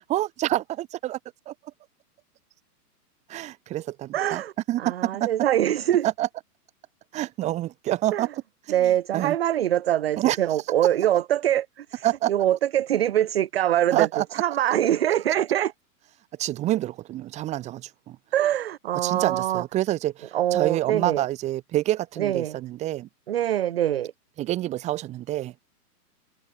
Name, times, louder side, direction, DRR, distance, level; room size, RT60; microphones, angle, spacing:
voice 1, 0.1-1.2 1.5-1.6 3.3-4.4 4.7-5.3 6.0-6.3 7.1-8.3 8.8-9.4 10.2-10.4 12.0-12.3 13.9-14.2 16.4-18.2 19.0-23.1 24.4-25.6, right 14 dB, 15° right, 2.2 m, -27 dB
voice 2, 4.1-6.1 8.1-8.3 8.7-15.7 18.3-19.6 20.3-21.2 22.2-22.6 23.3-24.1, right 11 dB, 40° right, 0.7 m, -24 dB
hypercardioid pair, 170°, 48 cm